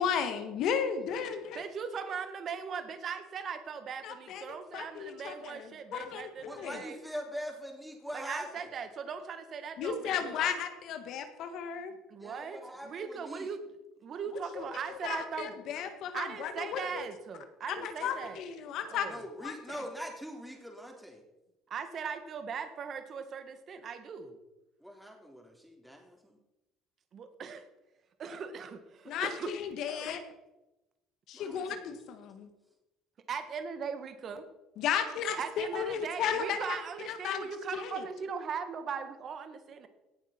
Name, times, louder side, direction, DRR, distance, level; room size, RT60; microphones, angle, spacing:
voice 1, 0.0-1.6 4.0-4.5 4.7-6.8 9.8-11.9 14.6-17.1 17.7-19.1 19.4-19.8 29.1-30.2 31.3-32.5 34.8-36.8 37.1-38.1, left 7 dB, 65° left, 9 dB, 1.7 m, -34 dB
voice 2, 1.6-7.0 8.1-10.4 12.1-13.6 14.0-15.5 16.1-18.4 18.9-19.2 21.7-24.4 27.1-27.6 28.2-29.5 29.9-30.0 33.3-34.4 35.4-39.9, right 6 dB, 50° right, 9 dB, 1.8 m, -39 dB
voice 3, 6.5-8.7 12.2-13.5 19.1-21.2 24.8-26.4 31.3-32.0, equal, 5° right, 2 dB, 3.6 m, -43 dB
18.0 x 7.3 x 5.9 m, 1.0 s
supercardioid pair, 80°, 0 cm